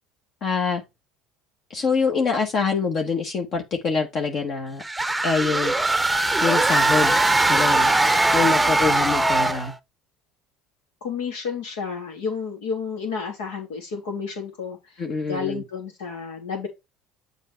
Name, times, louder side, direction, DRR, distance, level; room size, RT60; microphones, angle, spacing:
voice 1, 0.4-0.8 1.7-4.8 5.2-5.7 6.4-7.2 7.5-7.9 8.3-9.7 15.0-15.6, left 5 dB, 50° left, 1.3 m, -25 dB
sound 1, 4.8-9.7, right 2 dB, 10° right, 0.7 m, -20 dB
voice 2, 11.0-14.9 15.2-16.7, left 5 dB, 90° left, 2.9 m, -31 dB
7.3 x 4.0 x 4.5 m
supercardioid pair, 95°, 0 cm